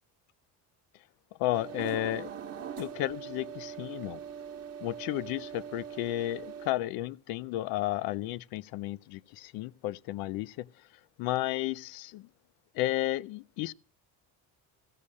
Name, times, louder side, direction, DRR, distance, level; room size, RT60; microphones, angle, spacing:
voice 1, 1.4-2.3 2.8-4.2 4.8-10.7 11.2-12.3 12.8-13.7, left 15 dB, 70° left, 0.5 m, -33 dB
sound 1, 1.5-6.7, right 8 dB, 40° right, 1.1 m, -41 dB
15.5 x 6.5 x 8.4 m
cardioid pair, 170°, 38 cm